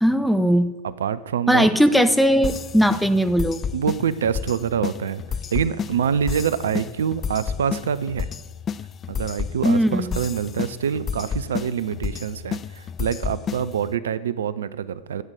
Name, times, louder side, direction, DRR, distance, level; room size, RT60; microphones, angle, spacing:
voice 1, 0.0-0.7 1.5-3.6 9.6-10.2, equal, ahead, 10 dB, 0.7 m, -18 dB
voice 2, 0.8-1.7 3.7-5.2 5.5-8.3 9.1-15.2, right 8 dB, 65° right, 16 dB, 0.5 m, -25 dB
sound 1, 2.4-13.9, left 7 dB, 25° left, 0.3 m, -31 dB
12.5 x 8.0 x 7.4 m, 1.4 s
figure-of-eight pair, 90°, 0 cm